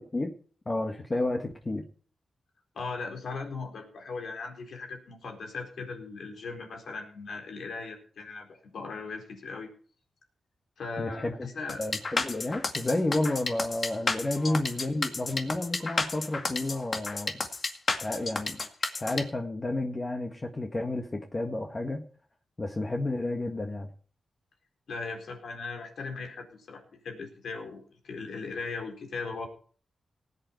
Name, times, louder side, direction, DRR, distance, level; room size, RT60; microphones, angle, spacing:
voice 1, 0.6-1.8 11.0-11.5 11.8-17.4 17.9-22.1 22.6-23.9, left 2 dB, 30° left, 1.7 m, -31 dB
voice 2, 2.7-9.7 10.8-11.8 14.3-14.6 24.9-29.5, left 4 dB, 75° left, 4.1 m, -38 dB
sound 1, 11.7-19.2, left 3 dB, 50° left, 2.0 m, -31 dB
19.0 x 8.3 x 4.5 m
cardioid pair, 65°, 0 cm